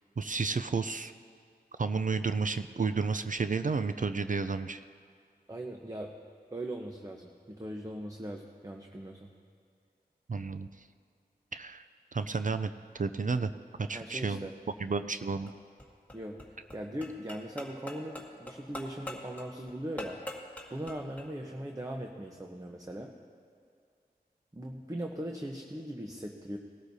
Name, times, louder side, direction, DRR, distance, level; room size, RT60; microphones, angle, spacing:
voice 1, 0.2-1.1 1.8-4.8 10.3-10.9 11.5-11.8 12.1-13.5 13.8-14.5 14.8-15.5, right 4 dB, 50° right, 10 dB, 0.4 m, -31 dB
voice 2, 5.5-6.1 6.5-9.3 13.9-14.5 16.1-16.4 16.7-20.2 20.7-23.1 24.5-26.6, right 1 dB, 20° right, 2 dB, 0.9 m, -39 dB
sound 1, 15.5-21.3, left 1 dB, 10° left, 1.9 m, -45 dB
19.5 x 13.0 x 2.7 m, 2.2 s
wide cardioid pair, 40°, 17 cm